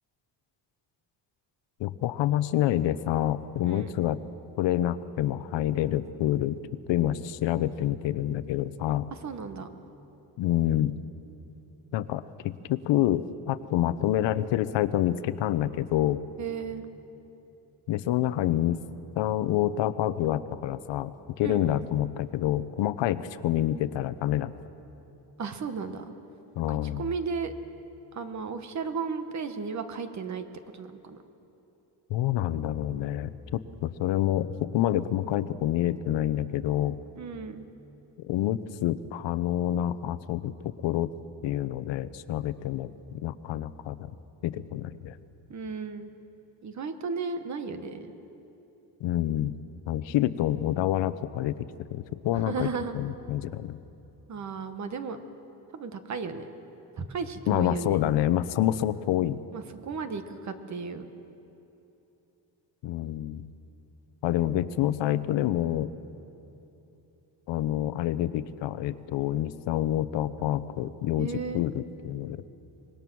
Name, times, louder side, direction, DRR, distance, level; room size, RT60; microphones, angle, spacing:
voice 1, 1.8-4.2 4.6-6.6 6.9-9.1 10.4-11.0 11.9-16.2 17.9-18.8 19.2-21.1 21.4-24.5 26.6-27.1 32.1-37.0 38.2-41.1 41.4-44.1 44.4-45.2 49.0-49.5 49.9-52.7 52.9-53.8 57.5-59.4 62.8-63.5 64.2-65.9 67.5-72.4, left 12 dB, 90° left, 14 dB, 0.9 m, -27 dB
voice 2, 9.2-9.7 16.4-16.8 21.4-21.8 25.4-26.1 26.7-27.5 28.1-30.5 30.7-31.2 37.2-37.7 45.5-46.1 46.6-48.1 52.3-53.0 54.3-55.2 55.7-56.5 57.0-58.0 59.5-61.1 71.2-71.6, right 5 dB, 40° right, 9 dB, 1.3 m, -34 dB
25.0 x 21.0 x 6.2 m, 3.0 s
cardioid pair, 160°, 42 cm